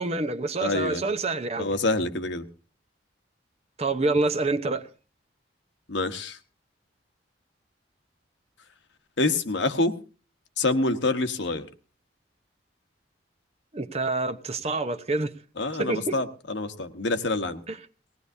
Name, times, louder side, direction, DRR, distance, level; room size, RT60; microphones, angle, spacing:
voice 1, 0.0-1.7 3.8-4.9 13.7-15.4 15.8-16.2 17.7-17.8, right 3 dB, 35° right, 0.9 m, -27 dB
voice 2, 0.6-1.0 1.6-2.5 5.9-6.4 9.2-10.0 10.6-11.7 15.6-17.6, left 2 dB, 75° left, 1.2 m, -26 dB
20.0 x 17.5 x 2.7 m
head